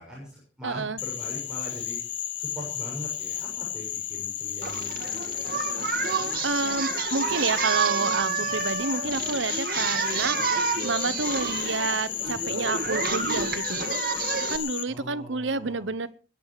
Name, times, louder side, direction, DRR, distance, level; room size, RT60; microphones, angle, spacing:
voice 1, 0.0-2.0 2.3-5.5 14.9-15.9, equal, 5° right, -5 dB, 6.8 m, -41 dB
voice 2, 0.6-1.0 6.0-6.1 6.4-13.8 14.5-16.1, right 4 dB, 80° right, 14 dB, 1.0 m, -29 dB
Frog, 1.0-14.8, left 10 dB, 70° left, 1.2 m, -33 dB
Singing, 4.6-14.6, right 6 dB, 50° right, 1.9 m, -29 dB
21.0 x 11.0 x 4.9 m, 0.38 s
head